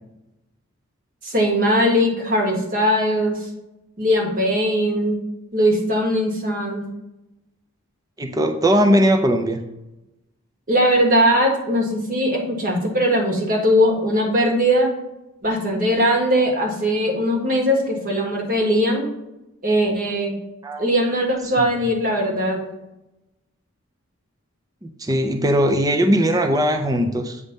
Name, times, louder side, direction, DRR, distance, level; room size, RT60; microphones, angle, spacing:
voice 1, 1.2-3.5 4.0-5.2 5.5-6.9 10.7-14.9 15.4-19.1 19.6-20.4 20.8-22.6, equal, 40° right, 1 dB, 1.6 m, -20 dB
voice 2, 8.2-9.6 20.6-20.8 24.8-27.4, equal, 15° right, 5 dB, 0.5 m, -19 dB
8.2 x 3.6 x 5.2 m, 0.92 s
head